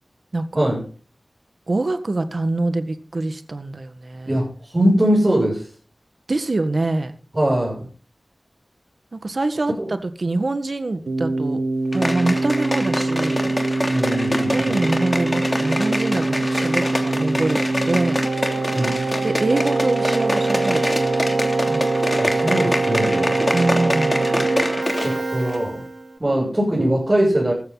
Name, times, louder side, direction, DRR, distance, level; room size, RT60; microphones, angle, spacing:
voice 1, 0.3-0.7 1.7-4.4 6.3-7.1 9.1-11.6 11.9-13.5 14.5-18.2 19.2-21.2 21.7-22.2 23.5-24.4, right 2 dB, 60° right, 10 dB, 1.7 m, -25 dB
voice 2, 4.3-5.7 7.3-7.9 9.8-9.9 13.9-14.8 18.7-19.1 22.2-23.4 25.0-25.8 26.2-27.5, right 1 dB, 30° right, -5 dB, 7.3 m, -21 dB
Keyboard (musical), 11.1-26.1, right 3 dB, 80° right, 1.6 m, -23 dB
sound 1, 11.9-25.2 25.5-25.6, left 1 dB, 25° left, 3.0 m, -26 dB
15.0 x 14.0 x 4.1 m, 0.38 s
wide cardioid pair, 75°, 0 cm